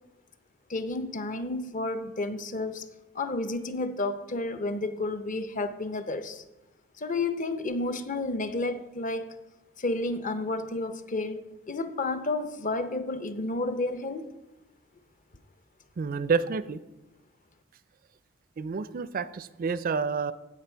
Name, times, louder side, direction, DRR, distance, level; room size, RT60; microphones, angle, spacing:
voice 1, 0.7-2.9 3.1-6.4 7.0-9.3 9.8-14.3, left 2 dB, 40° left, 10 dB, 0.7 m, -31 dB
voice 2, 16.0-16.8 18.6-20.3, right 5 dB, 45° right, 15 dB, 0.4 m, -29 dB
15.0 x 5.5 x 4.5 m, 1.0 s
head